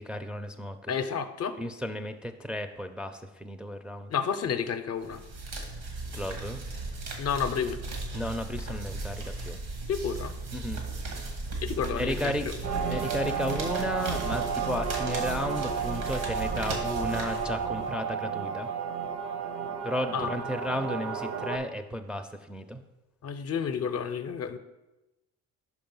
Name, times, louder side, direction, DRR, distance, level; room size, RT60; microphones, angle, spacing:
voice 1, 0.0-0.9 1.6-4.1 6.1-6.6 8.1-9.6 10.5-10.8 11.9-12.5 12.9-18.7 19.8-22.8, equal, 5° right, 5 dB, 0.4 m, -34 dB
voice 2, 0.9-1.6 4.1-5.2 7.2-7.8 9.9-10.4 11.6-12.5 20.1-20.3 23.2-24.6, left 7 dB, 55° left, 10 dB, 0.6 m, -30 dB
sound 1, 5.0-17.9, right 2 dB, 90° right, 1.5 m, -37 dB
sound 2, 12.6-21.6, right 6 dB, 65° right, 0.7 m, -32 dB
5.4 x 4.7 x 5.3 m, 1.0 s
cardioid pair, 90°, 30 cm